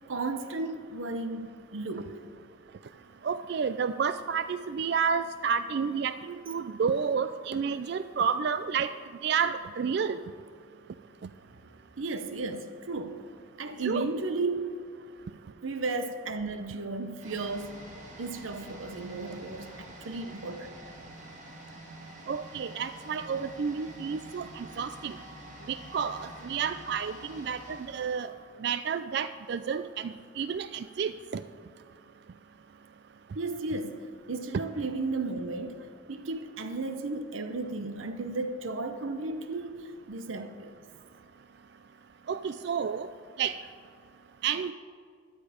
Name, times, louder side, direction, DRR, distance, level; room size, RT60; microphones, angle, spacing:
voice 1, 0.1-2.1 11.6-11.7 12.0-13.2 13.6-14.8 15.6-17.8 18.2-20.7 33.3-40.7, right 3 dB, 85° right, 8 dB, 0.8 m, -34 dB
voice 2, 3.2-8.9 9.2-10.2 13.8-14.1 22.3-25.2 25.7-28.3 28.6-31.4 42.3-43.1 43.4-43.6 44.4-44.7, right 6 dB, 55° right, 12 dB, 0.3 m, -30 dB
sound 1, 17.2-28.9 29.2-29.3, right 1 dB, 40° right, 2.0 m, -47 dB
13.0 x 10.0 x 5.0 m, 2.1 s
head